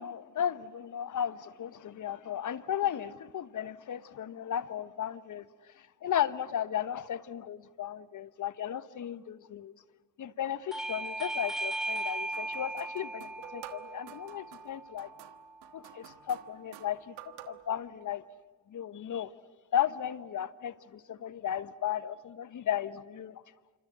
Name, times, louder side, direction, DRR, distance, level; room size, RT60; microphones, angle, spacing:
voice 1, 0.0-5.5 5.8-9.7 10.2-15.1 15.7-17.1 17.5-18.2 18.7-19.3 19.7-23.4, left 10 dB, 50° left, 1.2 m, -35 dB
Bell / Doorbell, 10.7-15.9, right 2 dB, ahead, 1.8 m, -38 dB
sound 1, 12.3-17.7, right 14 dB, 80° right, 1.4 m, -51 dB
27.5 x 26.0 x 8.0 m
hypercardioid pair, 60°, 39 cm